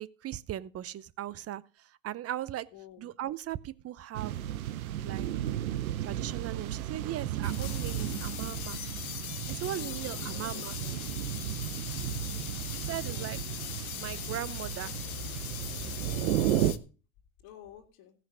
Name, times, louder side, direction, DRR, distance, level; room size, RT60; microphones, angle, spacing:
voice 1, 0.0-2.7 3.0-4.3 5.0-5.3 6.0-8.8 9.5-10.7 12.7-13.4 14.0-14.9, right 12 dB, 35° right, 0.7 m, -38 dB
voice 2, 2.7-3.1 9.6-11.0 13.0-13.5 17.4-18.1, left 11 dB, 60° left, 2.3 m, -51 dB
sound 1, 4.1-16.7, right 12 dB, 90° right, 0.9 m, -34 dB
sound 2, 7.4-16.8, left 11 dB, 90° left, 1.0 m, -40 dB
15.5 x 5.9 x 6.2 m
hypercardioid pair, 90°, 42 cm